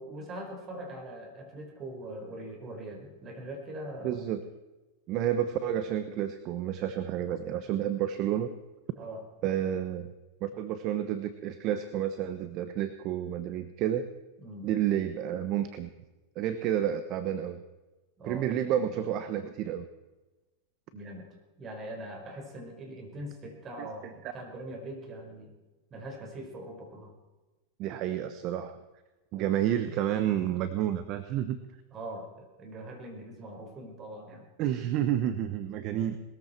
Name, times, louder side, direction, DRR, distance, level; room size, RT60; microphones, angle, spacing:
voice 1, 0.0-4.2 8.9-9.2 14.4-14.7 18.2-18.5 20.9-21.3 21.6-25.5 25.9-27.1 31.9-34.5, right 1 dB, 30° right, 3 dB, 4.8 m, -42 dB
voice 2, 4.0-4.4 5.1-8.5 9.4-10.1 10.4-14.1 14.6-15.9 16.4-17.6 18.2-19.8 23.8-23.9 27.8-28.8 29.3-31.6 34.6-36.2, right 10 dB, 45° right, 11 dB, 1.0 m, -30 dB
20.5 x 14.0 x 4.5 m, 1.1 s
hypercardioid pair, 110°, 0 cm